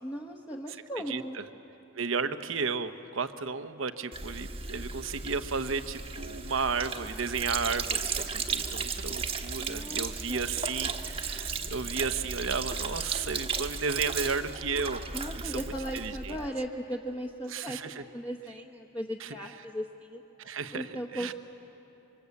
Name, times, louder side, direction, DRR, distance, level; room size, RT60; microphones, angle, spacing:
voice 1, 0.0-1.4 9.6-10.5 15.1-20.2 20.7-21.3, equal, 20° left, 0 dB, 1.0 m, -37 dB
voice 2, 1.9-15.0 15.4-15.6 15.9-16.4 17.5-18.0 19.2-19.3 20.4-21.3, right 5 dB, 80° right, 10 dB, 1.0 m, -33 dB
Sink (filling or washing), 4.1-16.5, right 5 dB, 30° right, 1.1 m, -35 dB
26.5 x 24.5 x 8.4 m, 3.0 s
head